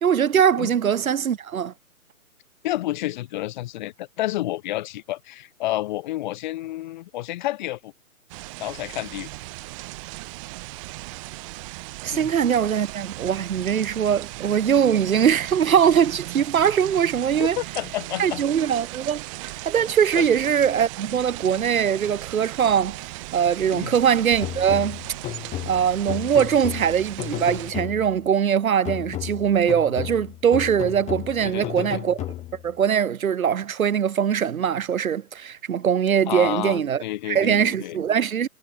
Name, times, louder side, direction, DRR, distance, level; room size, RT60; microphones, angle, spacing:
voice 1, 0.0-1.7 12.0-17.6 18.2-19.2 19.7-23.0 23.3-25.0 25.7-32.2 32.6-38.5, right 8 dB, 75° right, 0.7 m, -21 dB
voice 2, 2.6-7.9 8.6-9.3 12.1-12.3 17.4-18.4 20.2-20.3 23.7-23.9 31.4-32.0 36.3-38.0, left 15 dB, 30° left, 3.5 m, -30 dB
sound 1, 8.3-27.7, right 25 dB, 25° right, 1.8 m, -37 dB
sound 2, 24.4-28.3 28.8-32.7, left 14 dB, 15° left, 3.3 m, -33 dB
figure-of-eight pair, 140°, 43 cm